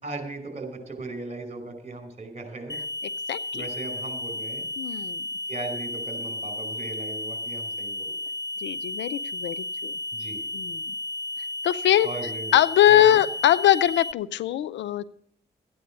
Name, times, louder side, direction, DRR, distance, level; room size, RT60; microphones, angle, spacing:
voice 1, 0.0-2.8 3.5-4.7 5.5-8.2 10.1-10.4 12.0-12.5 12.9-13.2, right 2 dB, 35° right, 6 dB, 4.9 m, -37 dB
sound 1, 2.7-14.1, left 1 dB, 20° left, 0.4 m, -33 dB
voice 2, 3.3-3.6 4.8-5.2 8.6-9.9 10.5-10.8 11.6-12.1 12.5-15.0, left 12 dB, 70° left, 18 dB, 0.5 m, -21 dB
14.0 x 9.4 x 6.2 m, 0.69 s
hypercardioid pair, 40°, 19 cm